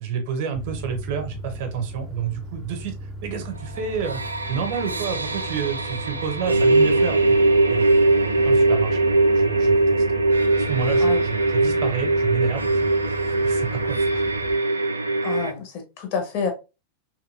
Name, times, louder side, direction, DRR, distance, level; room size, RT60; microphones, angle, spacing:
voice 1, 0.0-2.9 3.2-4.2 4.5-7.4 7.7-7.8 8.4-9.0 9.4-10.0 10.7-12.9 13.2-14.2, right 7 dB, 50° right, 0.7 m, -29 dB
sound 1, 0.5-14.5, equal, 15° right, 0.4 m, -37 dB
sound 2, 3.8-15.5, right 2 dB, 80° right, 0.3 m, -21 dB
voice 2, 15.2-16.5, left 6 dB, 45° left, 0.9 m, -28 dB
3.0 x 2.9 x 2.5 m
figure-of-eight pair, 90°, 0 cm